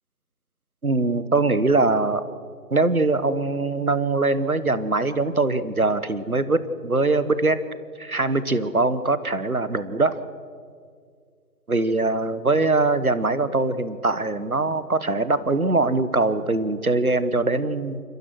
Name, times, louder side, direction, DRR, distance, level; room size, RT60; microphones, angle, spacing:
voice 1, 0.8-2.2 2.7-7.6 8.0-10.2 11.7-18.0, right 3 dB, 60° right, 14 dB, 1.4 m, -22 dB
29.0 x 15.0 x 6.3 m, 2.1 s
figure-of-eight pair, 175°, 48 cm